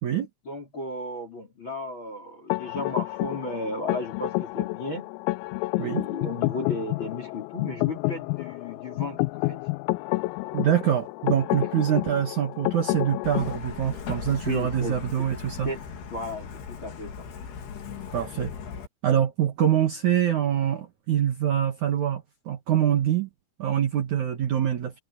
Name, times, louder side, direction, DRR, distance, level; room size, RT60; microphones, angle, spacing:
voice 1, 0.4-5.1 5.7-9.6 11.5-11.8 14.5-15.0 15.6-15.8 16.1-17.2, left 2 dB, 25° left, 3.5 m, -34 dB
sound 1, 2.5-13.6, left 23 dB, 90° left, 3.3 m, -29 dB
voice 2, 10.5-15.7 18.1-18.5 19.0-23.3 23.6-25.0, right 10 dB, 90° right, 1.6 m, -25 dB
Truck, 13.2-18.9, left 7 dB, 55° left, 4.5 m, -38 dB
omnidirectional pair, 6.0 m